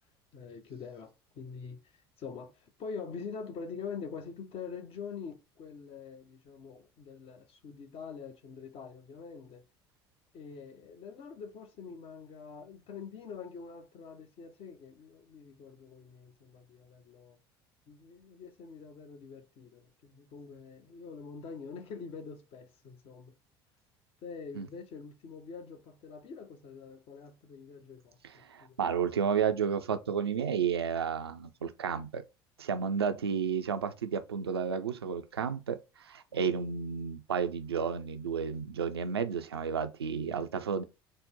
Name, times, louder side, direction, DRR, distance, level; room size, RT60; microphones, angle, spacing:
voice 1, 0.3-1.9 2.2-9.6 10.3-17.4 17.9-23.3 24.2-28.8 36.3-36.6, left 5 dB, 50° left, 0.9 m, -45 dB
voice 2, 28.2-32.2 32.6-35.8 36.0-40.8, right 7 dB, 90° right, 0.4 m, -32 dB
3.9 x 2.1 x 3.7 m
hypercardioid pair, 65°, 13 cm